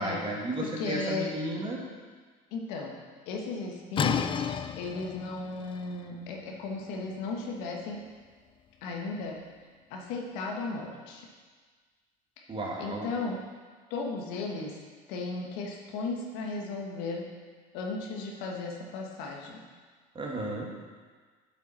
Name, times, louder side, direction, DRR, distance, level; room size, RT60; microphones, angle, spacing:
voice 1, 0.0-1.8 12.5-13.1 20.1-20.7, right 1 dB, 30° right, -1 dB, 2.0 m, -33 dB
voice 2, 0.6-1.3 2.5-3.0 3.2-8.0 8.8-9.4 9.9-11.3 12.4-12.5 12.8-13.4 13.9-14.8 15.1-17.3 17.7-19.6, left 3 dB, 75° left, 0 dB, 1.3 m, -35 dB
sound 1, 4.0-9.6, left 7 dB, 30° left, 0.4 m, -35 dB
8.1 x 7.2 x 4.3 m, 1.5 s
supercardioid pair, 90°, 18 cm